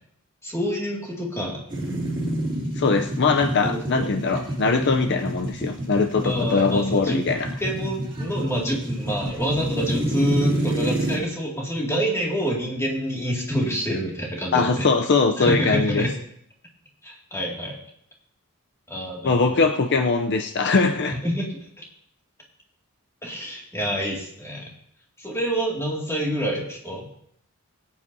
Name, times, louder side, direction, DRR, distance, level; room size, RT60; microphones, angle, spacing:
voice 1, 0.4-1.6 3.6-4.1 6.2-7.2 7.6-14.9 15.4-16.1 17.0-17.8 18.9-19.6 21.2-21.5 21.8-21.9 23.2-24.7 25.2-27.1, equal, 15° left, -2 dB, 2.3 m, -27 dB
sound 1, 1.7-11.2, right 1 dB, 25° right, 3.3 m, -28 dB
voice 2, 2.8-7.5 14.5-16.1 19.2-21.2, left 4 dB, 50° left, 5 dB, 0.6 m, -21 dB
22.5 x 8.6 x 2.7 m, 0.69 s
head